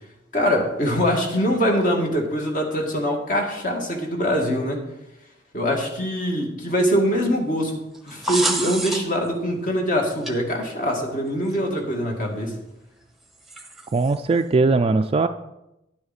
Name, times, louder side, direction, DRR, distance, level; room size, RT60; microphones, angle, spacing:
voice 1, 0.3-4.8 5.5-12.6, equal, 45° left, 1 dB, 2.0 m, -23 dB
sound 1, 7.9-9.3 10.3-10.4 11.5-11.6 13.5-14.1, right 1 dB, ahead, 1.0 m, -27 dB
voice 2, 13.9-15.3, right 3 dB, 30° right, 8 dB, 0.3 m, -19 dB
10.0 x 9.7 x 4.2 m, 0.89 s
head